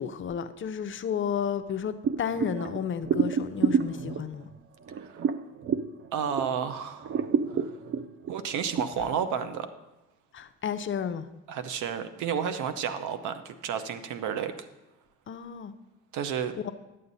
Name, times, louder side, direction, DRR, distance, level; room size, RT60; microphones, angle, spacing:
voice 1, 0.0-4.5 9.0-9.1 10.3-11.3 15.3-15.7 16.6-16.7, left 7 dB, 35° left, 0.6 m, -32 dB
sound 1, 2.0-6.6 7.0-8.8, right 6 dB, 40° right, 0.5 m, -29 dB
voice 2, 6.1-7.2 7.5-7.7 8.3-9.7 11.5-14.7 16.1-16.6, right 7 dB, 60° right, 0.9 m, -31 dB
11.0 x 7.5 x 4.1 m
supercardioid pair, 80°, 33 cm